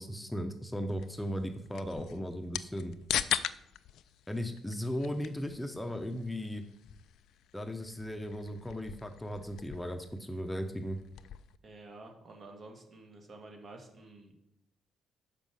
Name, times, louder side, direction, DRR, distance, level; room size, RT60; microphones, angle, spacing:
voice 1, 0.0-2.9 4.3-6.6 7.5-11.0, equal, 10° left, 6 dB, 0.8 m, -37 dB
sound 1, 0.9-11.6, left 10 dB, 70° left, 0.3 m, -41 dB
voice 2, 11.6-14.3, right 2 dB, 50° right, 3 dB, 1.9 m, -50 dB
6.1 x 5.2 x 6.4 m, 0.80 s
hypercardioid pair, 50°, 0 cm